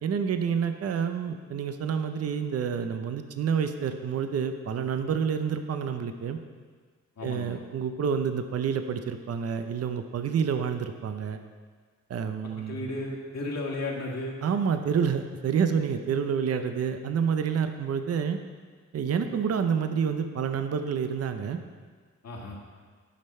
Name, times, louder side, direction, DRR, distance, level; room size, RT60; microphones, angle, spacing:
voice 1, 0.0-6.4 7.2-11.4 12.1-12.9 14.4-18.4 18.9-21.6, right 7 dB, 55° right, 8 dB, 0.6 m, -28 dB
voice 2, 7.2-7.6 12.4-14.4 22.2-22.6, left 2 dB, 60° left, -2 dB, 1.9 m, -34 dB
11.0 x 5.6 x 4.3 m, 1.6 s
cardioid pair, 85°, 30 cm